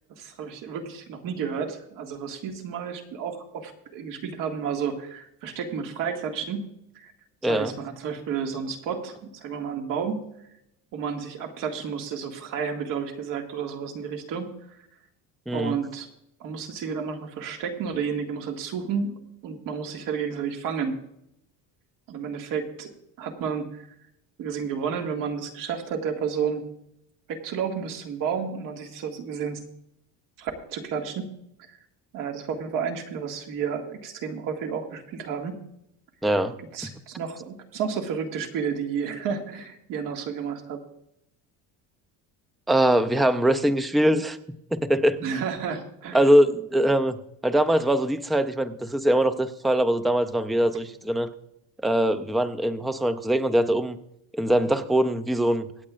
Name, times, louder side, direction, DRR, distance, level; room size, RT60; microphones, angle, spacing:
voice 1, 0.1-6.7 7.0-7.1 7.5-10.3 10.9-14.8 15.5-16.1 16.4-21.0 22.1-22.9 23.2-23.8 24.4-26.6 27.3-29.6 30.4-31.3 31.7-31.8 32.1-35.6 36.7-40.8 45.2-46.2, right 6 dB, 60° right, 4 dB, 2.0 m, -31 dB
voice 2, 7.4-7.7 15.5-15.8 36.2-36.6 42.7-44.4 44.7-45.2 46.1-47.2 47.4-51.3 51.8-54.0 54.3-55.7, right 1 dB, ahead, 11 dB, 0.3 m, -22 dB
25.0 x 8.6 x 2.5 m, 0.79 s
cardioid pair, 150°, 37 cm